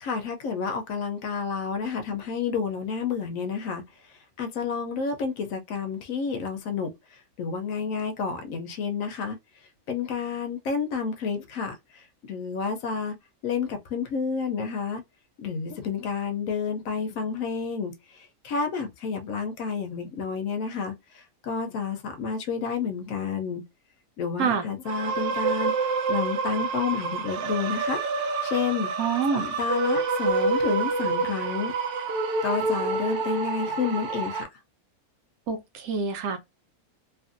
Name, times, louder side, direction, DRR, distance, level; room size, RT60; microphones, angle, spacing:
voice 1, 0.0-3.8 4.4-6.9 7.4-9.4 9.9-13.1 13.4-15.0 15.4-23.6 24.2-28.0 28.4-28.9 29.3-31.7 32.4-34.5, left 5 dB, 70° left, 0.9 m, -30 dB
sound 1, 24.9-34.4, right 3 dB, 65° right, 0.8 m, -27 dB
voice 2, 29.0-29.4 35.5-36.4, right 6 dB, 80° right, 1.1 m, -26 dB
2.8 x 2.5 x 2.5 m
omnidirectional pair, 1.6 m